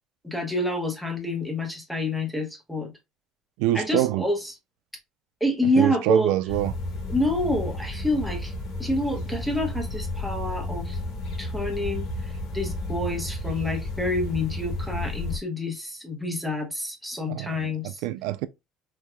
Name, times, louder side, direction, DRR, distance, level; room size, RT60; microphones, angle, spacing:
voice 1, 0.2-2.9 3.7-4.5 5.4-6.3 7.1-8.5 8.8-11.0 11.4-18.0, left 1 dB, ahead, 1.1 m, -28 dB
voice 2, 3.6-4.2 5.8-6.7 17.3-18.5, right 15 dB, 85° right, 0.3 m, -25 dB
sound 1, 6.5-15.4, left 2 dB, 50° left, 1.8 m, -32 dB
4.7 x 2.7 x 2.2 m
cardioid pair, 160°, 0 cm